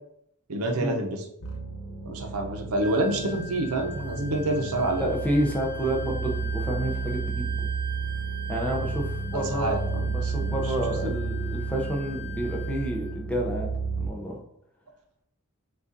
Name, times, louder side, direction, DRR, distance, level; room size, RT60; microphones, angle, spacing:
voice 1, 0.5-1.2 2.0-5.1 9.3-10.7 11.0-11.2, right 2 dB, 85° right, 2 dB, 0.7 m, -28 dB
sound 1, 1.4-14.1, right 4 dB, 85° left, 0.7 m, -32 dB
Wind instrument woodwind instrument, 2.8-13.2, left 1 dB, 45° left, 0.7 m, -41 dB
voice 2, 5.0-7.7 8.5-9.8 10.1-14.4, right 1 dB, 5° left, -1 dB, 0.5 m, -30 dB
6.1 x 2.4 x 2.6 m, 0.76 s
head